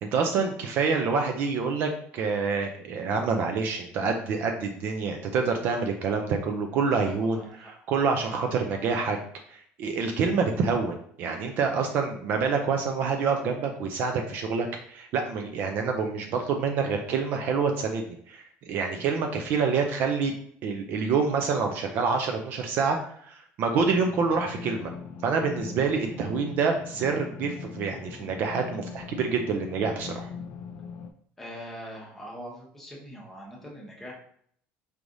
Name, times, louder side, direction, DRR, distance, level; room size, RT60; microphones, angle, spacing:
voice 1, 0.0-7.4 7.9-9.2 9.5-20.3 20.6-23.0 23.2-24.9 25.2-30.3, right 5 dB, 45° right, 4 dB, 0.4 m, -27 dB
voice 2, 6.7-7.7 31.4-34.1, equal, 5° left, -3 dB, 0.9 m, -43 dB
sound 1, 23.7-31.1, left 6 dB, 55° left, 0.4 m, -41 dB
4.8 x 3.2 x 2.6 m, 0.64 s
cardioid pair, 180°, 4 cm